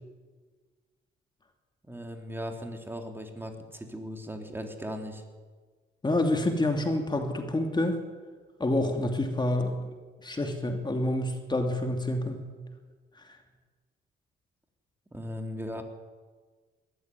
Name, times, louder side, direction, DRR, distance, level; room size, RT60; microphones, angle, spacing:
voice 1, 1.8-5.2 15.1-15.8, equal, 10° right, 4 dB, 3.6 m, -38 dB
voice 2, 6.0-8.0 8.6-9.7 10.2-12.5, left 1 dB, 20° left, 4 dB, 2.9 m, -27 dB
20.0 x 14.5 x 9.6 m, 1.5 s
cardioid pair, 90°, 20 cm